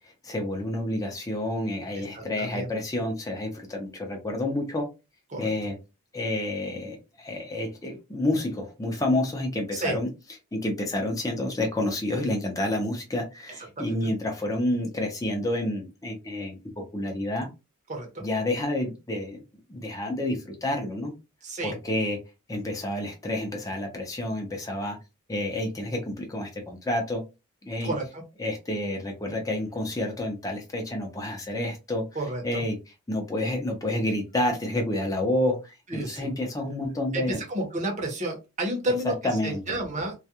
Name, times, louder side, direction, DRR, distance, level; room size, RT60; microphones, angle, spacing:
voice 1, 0.2-4.9 5.4-5.7 6.1-10.1 10.5-17.5 18.2-19.4 19.7-21.1 21.6-22.2 22.5-25.0 25.3-27.2 27.6-27.9 28.4-32.0 32.4-32.8 33.1-37.4 39.0-39.6, left 1 dB, 15° left, 2 dB, 0.6 m, -29 dB
voice 2, 1.9-2.7 5.3-5.5 9.7-10.0 13.6-14.0 17.9-18.3 21.4-21.8 27.8-28.2 32.1-32.6 35.9-36.3 37.1-40.1, right 1 dB, 35° right, 1 dB, 0.8 m, -31 dB
2.3 x 2.2 x 2.8 m, 0.26 s
head